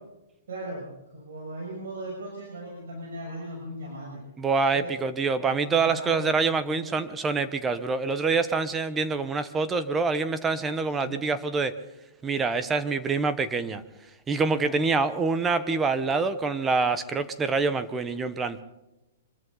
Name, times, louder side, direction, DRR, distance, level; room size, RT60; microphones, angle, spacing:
voice 1, 0.5-4.2 4.7-5.0 5.3-7.0 10.9-11.2 14.5-14.8, right 1 dB, 75° right, -1 dB, 6.5 m, -38 dB
voice 2, 4.4-11.7 12.2-13.8 14.3-18.6, right 4 dB, 15° right, 12 dB, 1.0 m, -26 dB
25.0 x 13.5 x 4.0 m, 0.97 s
hypercardioid pair, 145°, 0 cm